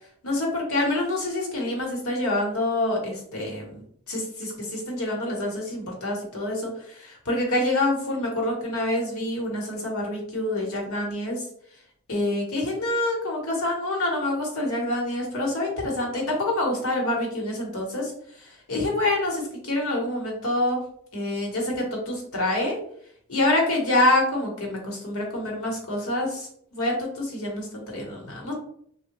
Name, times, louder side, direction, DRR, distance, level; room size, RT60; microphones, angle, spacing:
voice 1, 0.2-3.8 4.1-6.7 7.0-11.4 12.1-18.1 18.7-19.3 19.6-20.8 21.1-22.8 23.3-28.5, left 1 dB, 70° left, -1 dB, 1.0 m, -26 dB
3.5 x 2.2 x 2.9 m, 0.66 s
head